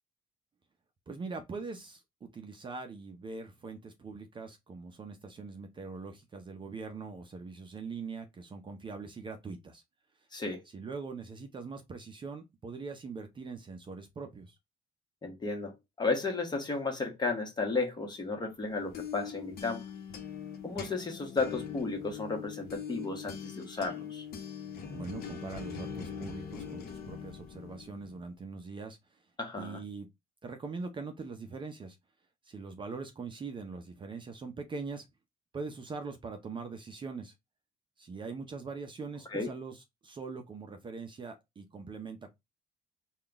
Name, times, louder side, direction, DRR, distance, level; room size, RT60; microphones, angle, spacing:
voice 1, 1.1-9.8 10.7-14.6 24.9-29.2 29.6-30.1 30.4-32.0 32.4-35.1 35.5-37.3 38.0-42.3, right 4 dB, 30° right, 0.6 m, -42 dB
voice 2, 15.2-19.8 20.6-24.3 29.4-29.8 39.3-39.5, left 3 dB, 25° left, 1.2 m, -33 dB
sound 1, 18.6-28.3, left 7 dB, 65° left, 0.9 m, -42 dB
3.6 x 2.3 x 3.4 m
cardioid pair, 110°, 17 cm